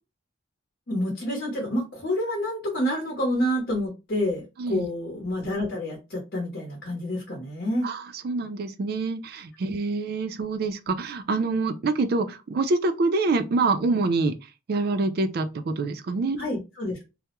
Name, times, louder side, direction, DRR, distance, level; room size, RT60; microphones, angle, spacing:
voice 1, 0.9-7.9 16.4-17.0, left 1 dB, 55° left, 0.8 m, -28 dB
voice 2, 7.8-14.3 14.7-16.4, right 3 dB, 50° right, 0.3 m, -26 dB
2.2 x 2.0 x 2.9 m
head